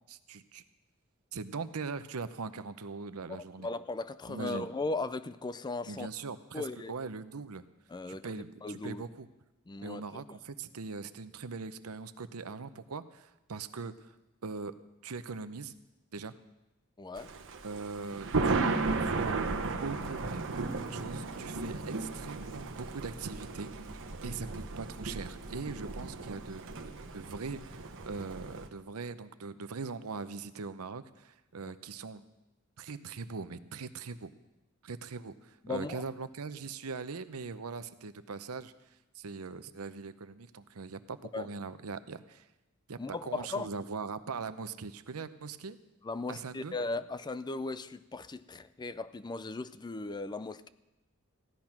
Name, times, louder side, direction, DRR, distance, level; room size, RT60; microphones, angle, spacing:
voice 1, 0.1-0.6 1.3-3.7 4.3-4.7 5.8-7.6 8.1-9.3 9.8-14.1 14.4-14.8 15.0-15.7 16.1-16.3 17.6-19.3 19.8-26.6 27.1-32.2 32.8-34.3 34.8-38.7 39.1-42.5 42.9-45.8 46.3-46.7, right 4 dB, 80° right, 12 dB, 0.7 m, -41 dB
voice 2, 3.6-6.1 6.5-7.0 7.9-8.3 8.6-9.0 9.7-10.0 17.0-17.3 28.0-28.1 31.6-31.7 35.6-36.0 41.3-41.5 43.0-43.7 46.0-50.7, left 3 dB, 20° left, 15 dB, 0.4 m, -37 dB
Thunder, 17.2-28.7, right 3 dB, 60° right, 1.1 m, -35 dB
15.5 x 11.0 x 5.9 m, 0.98 s
head